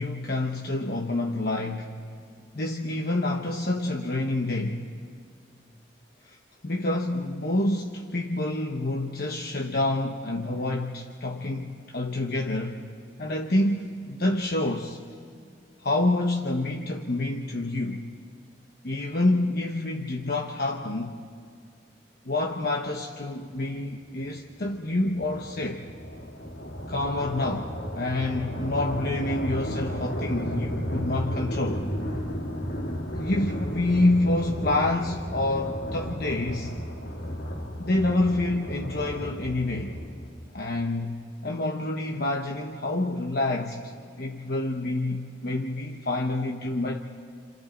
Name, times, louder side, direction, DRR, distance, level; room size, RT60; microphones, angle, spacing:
voice 1, 0.0-2.0 2.5-4.8 6.2-6.4 6.6-12.8 13.2-15.0 15.8-18.1 18.8-21.1 22.2-25.9 26.9-31.8 33.1-36.7 37.8-39.9 40.5-43.9 44.2-47.0, left 2 dB, 55° left, 2 dB, 1.1 m, -27 dB
sound 1, 24.4-40.6, equal, 75° left, 2.4 m, -33 dB
29.5 x 27.5 x 4.5 m, 2.3 s
head